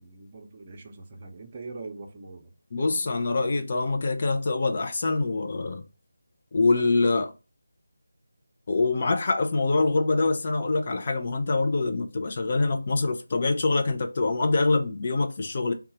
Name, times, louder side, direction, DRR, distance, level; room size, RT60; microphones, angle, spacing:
voice 1, 0.0-2.5, right 3 dB, 30° right, 0.7 m, -42 dB
voice 2, 2.7-5.8 6.5-7.3 8.7-15.7, left 3 dB, 40° left, 0.6 m, -25 dB
3.7 x 2.3 x 4.2 m
figure-of-eight pair, 165°, 0 cm